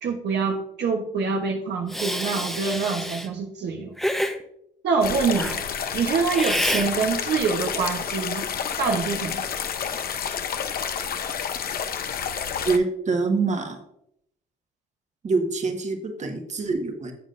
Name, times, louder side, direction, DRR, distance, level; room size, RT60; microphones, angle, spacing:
voice 1, 0.0-3.9 4.8-5.7 5.9-8.5 8.8-9.5, right 5 dB, 65° right, 2 dB, 1.1 m, -25 dB
Hiss, 1.9-3.3 4.0-4.4 5.3-5.6 6.3-6.9, equal, ahead, 0.9 m, -27 dB
sound 1, 5.0-12.8, left 7 dB, 55° left, 0.9 m, -29 dB
voice 2, 12.6-13.8 15.2-17.1, right 4 dB, 40° right, 5 dB, 1.6 m, -25 dB
11.0 x 7.4 x 2.6 m, 0.74 s
cardioid pair, 100°, 19 cm